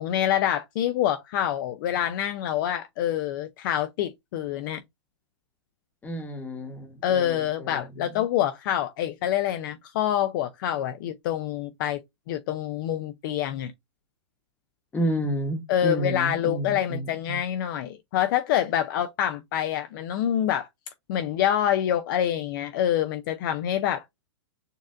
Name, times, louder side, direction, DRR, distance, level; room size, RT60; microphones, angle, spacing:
voice 1, 0.0-4.8 7.0-12.0 12.3-13.7 15.7-20.7 21.1-24.0, left 10 dB, 45° left, 0.4 m, -26 dB
voice 2, 6.0-7.8 14.9-17.4, right 1 dB, 10° left, 1.0 m, -31 dB
6.5 x 2.4 x 2.5 m
hypercardioid pair, 150°, 15 cm